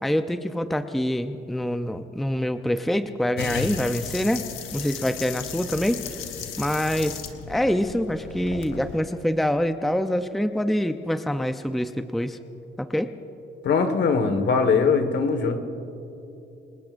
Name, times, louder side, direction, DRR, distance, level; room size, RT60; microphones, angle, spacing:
voice 1, 0.0-4.4 4.7-6.1 6.6-7.2 7.5-12.4 12.8-13.1, equal, ahead, 9 dB, 0.6 m, -25 dB
sound 1, 3.4-9.0, left 7 dB, 85° left, 1.3 m, -35 dB
voice 2, 13.6-15.6, left 5 dB, 65° left, 8 dB, 1.7 m, -21 dB
28.0 x 19.5 x 2.6 m, 3.0 s
cardioid pair, 90°, 20 cm